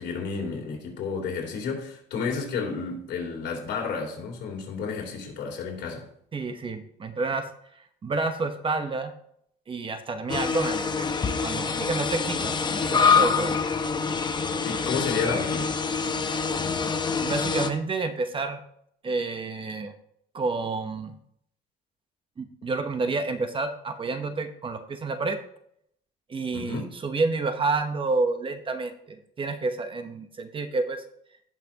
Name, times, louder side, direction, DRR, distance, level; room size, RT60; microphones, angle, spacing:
voice 1, 0.0-6.0 14.6-15.8 26.5-26.9, left 5 dB, 75° left, -1 dB, 3.4 m, -31 dB
voice 2, 6.3-7.5 8.0-9.1 9.7-11.1 11.4-12.5 12.9-13.5 17.2-18.6 19.0-19.9 20.3-21.1 22.4-25.4 26.3-31.0, right 3 dB, 30° right, 8 dB, 1.0 m, -29 dB
sound 1, 10.3-17.7, left 5 dB, 25° left, 0.8 m, -25 dB
17.5 x 5.9 x 2.9 m, 0.70 s
cardioid pair, 135°, 18 cm